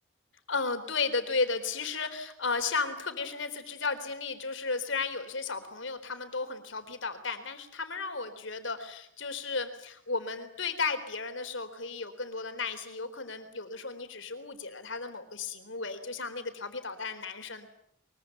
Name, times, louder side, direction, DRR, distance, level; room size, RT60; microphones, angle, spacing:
voice 1, 0.5-17.7, left 4 dB, 70° left, 8 dB, 3.9 m, -34 dB
23.5 x 23.5 x 9.2 m, 0.69 s
head